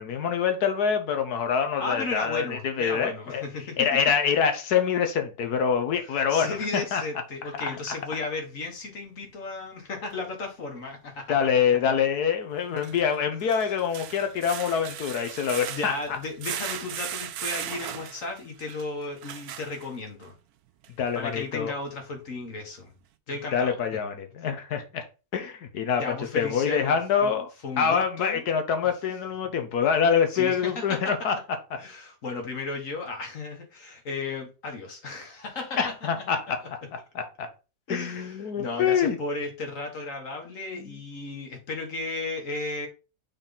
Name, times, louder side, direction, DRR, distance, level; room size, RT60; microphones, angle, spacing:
voice 1, 0.0-3.4 3.8-7.0 7.6-7.8 11.3-16.2 21.0-21.7 23.5-25.0 25.3-27.5 27.8-31.4 31.7-31.8 35.8-37.5 37.9-39.2 40.7-41.0, left 7 dB, 85° left, 1.5 m, -25 dB
voice 2, 1.8-4.0 6.0-11.5 13.5-13.7 15.7-20.3 21.1-22.9 23.3-23.8 26.0-27.3 27.6-28.4 30.3-31.1 31.8-36.1 37.9-42.9, left 3 dB, 60° left, 1.8 m, -34 dB
sound 1, 10.1-10.2 12.6-20.3 20.8-20.9 21.4-21.5, right 10 dB, 85° right, 1.1 m, -37 dB
6.4 x 4.1 x 3.9 m
omnidirectional pair, 1.6 m